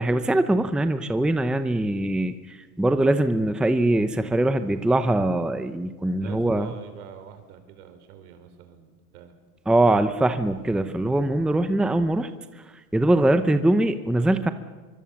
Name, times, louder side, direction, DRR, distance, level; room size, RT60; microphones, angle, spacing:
voice 1, 0.0-6.7 9.7-12.3 12.9-14.5, right 1 dB, ahead, 10 dB, 0.8 m, -22 dB
voice 2, 6.2-9.4, right 8 dB, 70° right, 8 dB, 4.8 m, -45 dB
24.5 x 24.0 x 7.2 m, 1.3 s
supercardioid pair, 125°, 46 cm